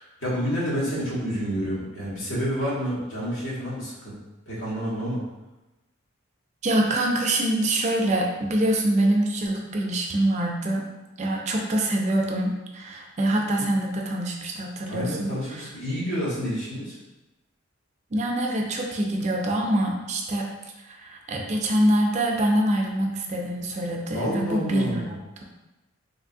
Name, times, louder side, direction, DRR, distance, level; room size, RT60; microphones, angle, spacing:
voice 1, 0.0-4.2 4.5-5.2 14.9-16.9 24.1-25.1, equal, 75° left, -7 dB, 1.3 m, -29 dB
voice 2, 6.6-10.9 11.2-15.7 18.1-20.5 20.9-25.0, right 1 dB, 35° right, 1 dB, 0.4 m, -25 dB
3.4 x 2.6 x 2.6 m, 1.0 s
head